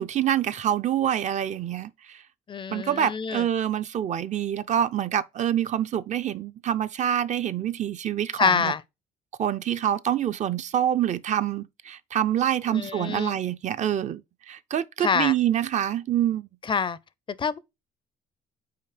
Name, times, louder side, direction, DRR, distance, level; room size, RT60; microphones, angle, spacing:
voice 1, 0.0-2.2 2.7-8.7 9.4-16.5, right 10 dB, 45° right, 0.5 m, -26 dB
voice 2, 2.5-3.4 8.4-8.8 12.7-13.4 15.0-15.3 16.7-17.0 17.4-17.6, left 6 dB, 30° left, 0.5 m, -26 dB
5.7 x 4.4 x 4.9 m
cardioid pair, 110°, 17 cm